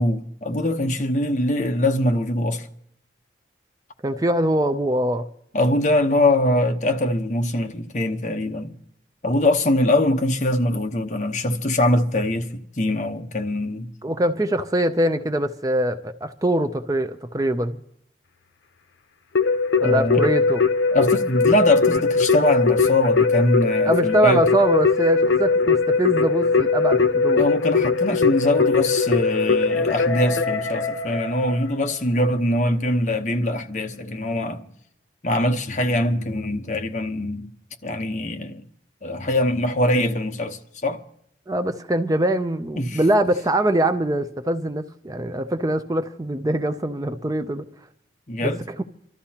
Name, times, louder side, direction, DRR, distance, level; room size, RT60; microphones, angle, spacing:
voice 1, 0.0-2.7 5.5-8.8 9.2-13.9 19.8-20.2 20.9-24.4 27.4-34.7 35.2-37.5 37.8-38.6 39.0-41.0 42.8-43.0 48.3-48.6, left 1 dB, 40° left, 0.9 m, -22 dB
voice 2, 4.0-5.3 14.0-17.8 19.8-20.6 23.8-27.5 41.5-47.6 48.4-48.5 48.8-48.9, right 1 dB, 20° right, 0.4 m, -23 dB
Keyboard (musical), 19.4-31.8, left 4 dB, 90° left, 0.7 m, -20 dB
28.5 x 13.0 x 2.9 m
head